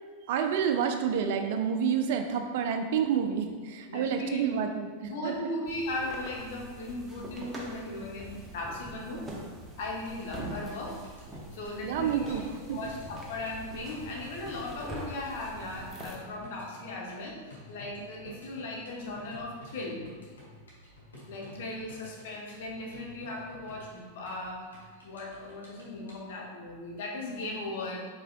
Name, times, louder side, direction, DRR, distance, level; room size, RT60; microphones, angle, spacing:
voice 1, 0.2-5.5 11.8-12.8 18.0-18.4, right 7 dB, 50° right, 6 dB, 0.4 m, -29 dB
voice 2, 3.9-4.4 5.0-9.2 9.8-11.0 11.5-12.4 12.7-20.0 21.3-24.6 25.0-28.0, left 2 dB, 55° left, -2 dB, 1.0 m, -37 dB
sound 1, 5.7-16.2, right 1 dB, 10° right, 0.8 m, -44 dB
sound 2, 10.6-26.2, left 2 dB, 75° left, 1.3 m, -52 dB
4.8 x 4.6 x 2.3 m, 1.5 s
figure-of-eight pair, 90°, 0 cm